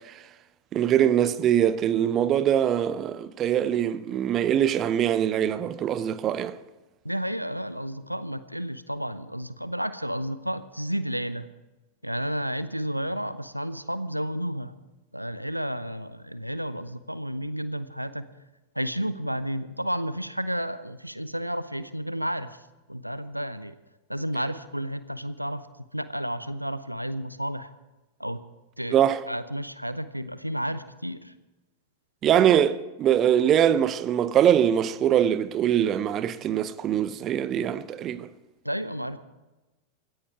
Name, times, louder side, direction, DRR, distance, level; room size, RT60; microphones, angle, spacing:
voice 1, 0.7-6.6 28.9-29.2 32.2-38.3, right 10 dB, 30° right, 0.8 m, -23 dB
voice 2, 7.0-11.5 12.0-14.7 15.1-18.2 18.7-22.6 22.9-23.7 24.1-25.6 25.9-27.7 28.2-28.4 28.8-29.0 29.3-31.3 38.6-39.2, equal, 90° right, 0.7 m, -31 dB
17.0 x 14.5 x 4.6 m
figure-of-eight pair, 90°, 0 cm